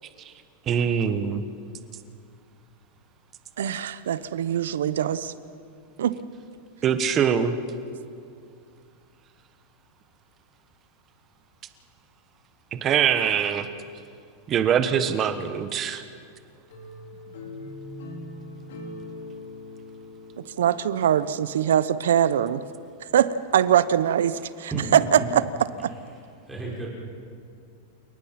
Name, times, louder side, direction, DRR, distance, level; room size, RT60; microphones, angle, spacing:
voice 1, 0.7-1.4 6.8-7.6 12.7-13.7 14.5-16.0, right 8 dB, 25° right, 10 dB, 1.3 m, -23 dB
voice 2, 3.6-5.3 6.0-6.2 20.6-22.6 23.1-24.7 25.3-25.4 25.8-25.9, right 10 dB, 90° right, 15 dB, 0.9 m, -23 dB
sound 1, 16.7-21.6, left 2 dB, 80° left, 4.2 m, -41 dB
voice 3, 24.3-25.5 26.5-26.9, right 2 dB, 5° right, -4 dB, 5.7 m, -33 dB
29.0 x 19.0 x 6.0 m, 2.3 s
supercardioid pair, 150°, 0 cm